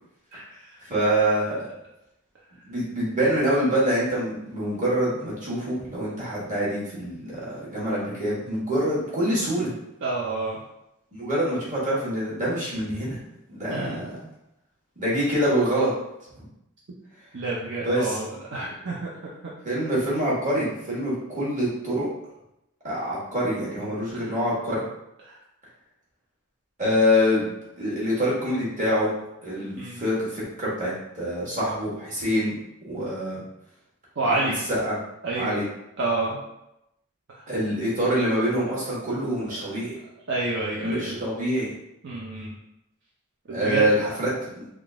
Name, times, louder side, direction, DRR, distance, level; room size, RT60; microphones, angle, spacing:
voice 1, 0.3-0.8 10.0-10.6 13.7-14.0 17.3-19.1 24.1-24.4 25.2-25.4 29.8-30.0 34.2-34.6 35.2-35.6 36.0-36.4 37.3-37.5 40.3-41.2 42.0-42.5 43.5-44.2, right 2 dB, 60° right, -5 dB, 0.6 m, -29 dB
voice 2, 0.9-1.7 2.6-9.7 11.1-13.2 13.5-14.2 15.0-15.9 16.3-16.4 17.8-18.2 19.6-22.1 22.8-24.8 26.8-27.5 27.8-29.1 29.4-32.5 32.8-33.4 34.3-34.9 35.4-35.6 37.5-39.9 40.8-41.7 43.5-44.7, equal, 35° right, -7 dB, 1.5 m, -25 dB
3.7 x 2.4 x 3.5 m, 0.86 s
head